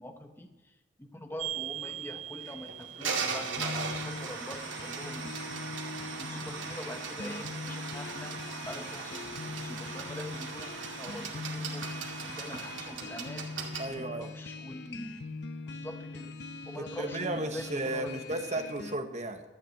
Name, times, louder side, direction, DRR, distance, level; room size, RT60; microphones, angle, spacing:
voice 1, 0.0-5.7 6.2-8.4 8.7-13.5 13.9-15.2 15.7-16.3 16.6-18.4, left 1 dB, 10° left, 6 dB, 1.0 m, -44 dB
sound 1, 1.4-13.8, right 5 dB, 75° right, 2.2 m, -38 dB
sound 2, 3.6-18.9, left 3 dB, 60° left, 0.7 m, -42 dB
voice 2, 13.8-14.3 16.8-19.4, right 2 dB, 35° right, 6 dB, 1.1 m, -34 dB
13.0 x 6.8 x 8.9 m, 1.1 s
head